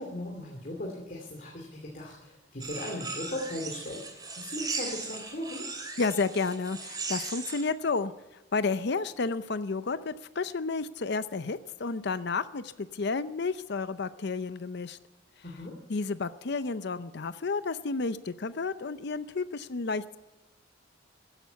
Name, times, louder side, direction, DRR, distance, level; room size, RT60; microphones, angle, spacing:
voice 1, 0.0-5.6 15.4-15.8, left 1 dB, 45° left, 0 dB, 2.5 m, -38 dB
sound 1, 2.6-7.6, right 4 dB, 20° right, 2.7 m, -38 dB
voice 2, 6.0-8.1 8.5-15.0 15.9-20.2, left 4 dB, 60° left, 13 dB, 0.6 m, -31 dB
15.5 x 11.0 x 6.9 m, 1.1 s
head